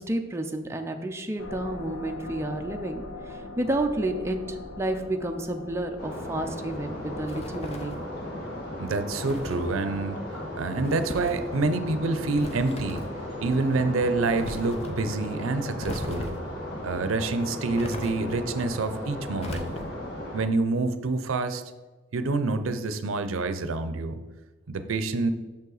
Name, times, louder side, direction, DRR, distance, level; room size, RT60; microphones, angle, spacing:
voice 1, 0.0-8.0, right 1 dB, 15° right, 4 dB, 0.4 m, -30 dB
State of shock, 1.4-7.5, left 2 dB, 85° left, 1.2 m, -41 dB
sound 1, 6.0-20.4, left 1 dB, 55° left, 1.8 m, -36 dB
sound 2, 7.3-8.0 9.2-9.6 10.8-11.4 12.3-13.2 14.4-14.9 15.8-16.5 17.8-18.5 19.4-20.1, left 1 dB, 30° left, 0.7 m, -38 dB
voice 2, 8.8-10.2 10.6-13.1 13.4-16.4 16.8-19.7 20.3-21.6 22.1-24.2 24.7-25.3, right 3 dB, 80° right, 10 dB, 0.5 m, -27 dB
6.7 x 5.4 x 4.0 m, 1.2 s
head